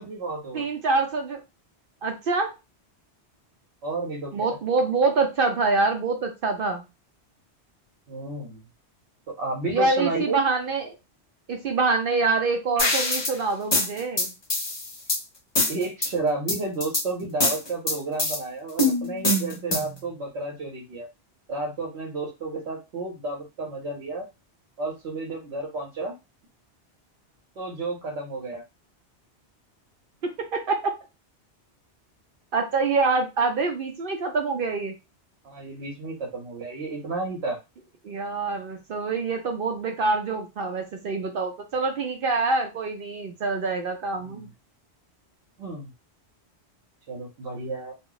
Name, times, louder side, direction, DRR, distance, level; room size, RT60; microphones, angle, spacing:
voice 1, 0.0-0.7 3.8-4.5 8.1-8.6 9.3-10.4 15.7-21.1 21.5-24.3 24.8-26.1 27.6-28.6 35.4-37.6 44.2-44.5 45.6-45.9 47.1-47.9, right 3 dB, 75° right, -2 dB, 1.0 m, -32 dB
voice 2, 0.5-1.4 2.0-2.5 4.3-6.8 9.7-11.0 11.5-14.3 30.2-30.9 32.5-34.9 38.0-44.5, right 3 dB, 60° right, 3 dB, 0.6 m, -25 dB
sound 1, 12.8-13.3 13.7-15.2 15.6-16.1 16.5-17.0 17.4-18.4 18.8-20.0, left 1 dB, 30° left, 0.6 m, -24 dB
2.3 x 2.0 x 3.7 m, 0.26 s
omnidirectional pair, 1.2 m